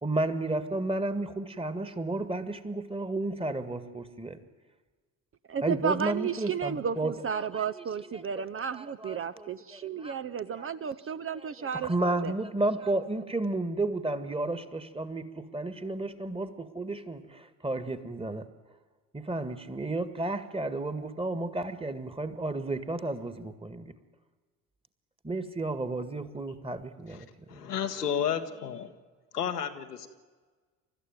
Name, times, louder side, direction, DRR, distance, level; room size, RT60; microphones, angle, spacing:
voice 1, 0.0-4.4 5.6-7.9 8.1-8.3 8.7-10.2 10.5-10.7 11.4-18.5 19.1-23.9 25.2-27.7, right 2 dB, 10° right, 11 dB, 1.9 m, -33 dB
voice 2, 5.5-12.3, right 7 dB, 30° right, 13 dB, 0.8 m, -33 dB
voice 3, 27.5-28.9 29.3-30.1, left 8 dB, 85° left, 6 dB, 1.3 m, -31 dB
28.5 x 13.5 x 9.5 m, 1.4 s
figure-of-eight pair, 50°, 46 cm